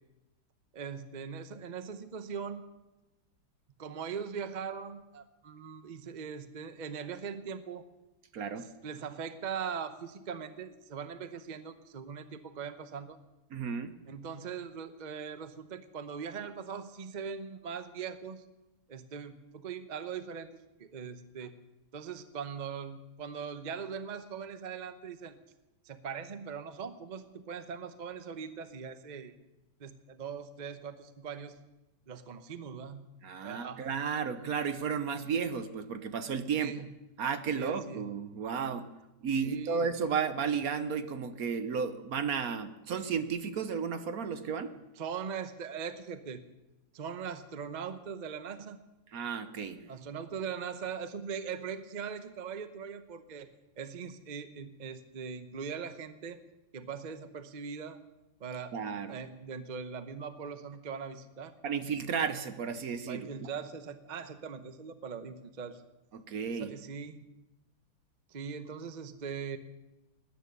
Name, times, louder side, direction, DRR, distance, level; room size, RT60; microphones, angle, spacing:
voice 1, 0.7-2.6 3.8-7.9 8.8-13.2 14.1-18.5 18.9-21.6 21.9-25.4 25.8-29.4 29.8-31.6 32.1-33.1 33.4-33.9 36.6-36.9 37.5-38.1 39.4-39.9 45.0-46.4 46.9-48.8 49.9-53.5 53.8-56.4 56.7-58.0 58.4-58.8 59.1-61.6 63.1-65.8 66.6-67.2 68.3-69.6, right 6 dB, 35° right, 10 dB, 0.7 m, -40 dB
voice 2, 8.3-8.7 13.5-13.9 33.2-36.7 37.2-38.9 39.2-44.7 49.1-49.8 58.7-59.2 61.6-63.5 66.1-66.8, right 6 dB, 60° right, 10 dB, 1.3 m, -33 dB
19.5 x 10.0 x 6.7 m, 1.0 s
omnidirectional pair, 1.8 m